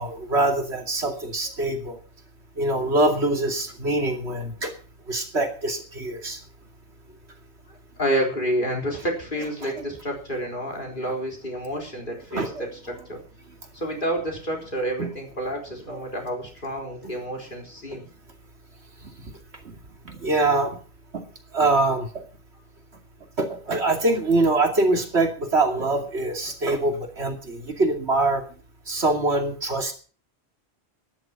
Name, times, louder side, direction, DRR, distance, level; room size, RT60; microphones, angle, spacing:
voice 1, 0.0-2.0 2.6-4.7 5.1-6.4 9.6-9.8 12.3-12.6 15.0-15.1 15.9-16.0 19.0-19.3 20.0-20.8 21.1-21.2 21.5-22.1 23.4-28.4 28.9-29.9, right 2 dB, 70° right, 4 dB, 2.8 m, -24 dB
voice 2, 7.7-13.2 13.7-18.1, right 1 dB, 45° left, 1 dB, 4.2 m, -29 dB
13.0 x 10.5 x 6.0 m, 0.39 s
omnidirectional pair, 1.2 m